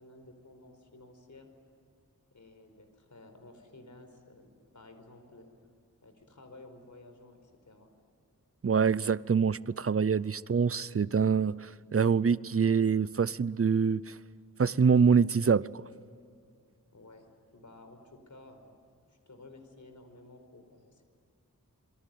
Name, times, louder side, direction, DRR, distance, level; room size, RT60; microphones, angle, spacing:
voice 1, 0.0-1.5 2.3-5.5 6.0-7.9 16.9-17.3 17.5-18.7 19.1-21.0, left 2 dB, 60° left, 4.8 m, -53 dB
voice 2, 8.6-14.1 14.6-15.7, right 6 dB, 45° right, 0.6 m, -25 dB
27.5 x 22.5 x 9.3 m
wide cardioid pair, 75°, 33 cm